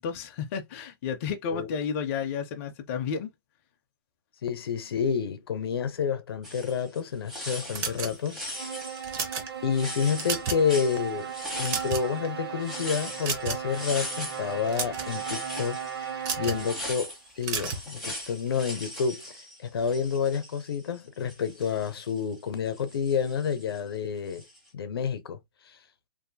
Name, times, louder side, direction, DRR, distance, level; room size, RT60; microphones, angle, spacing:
voice 1, 0.0-3.3, left 6 dB, 35° left, 0.4 m, -32 dB
voice 2, 4.4-8.7 9.6-11.3 11.6-24.4 24.7-25.4, left 6 dB, 80° left, 0.6 m, -29 dB
sound 1, 6.4-7.0 7.3-12.2 12.6-21.0 21.2-23.8 24.3-24.7, equal, 5° right, 0.9 m, -40 dB
sound 2, 7.7-8.4 9.0-9.5 10.0-10.7 11.0-11.2 11.5-12.3 13.2-13.8 14.5-15.1 16.2-16.6 17.4-17.9, right 5 dB, 25° right, 0.5 m, -32 dB
sound 3, 8.5-17.1, right 8 dB, 90° right, 1.2 m, -37 dB
2.6 x 2.6 x 2.2 m
hypercardioid pair, 155°, 12 cm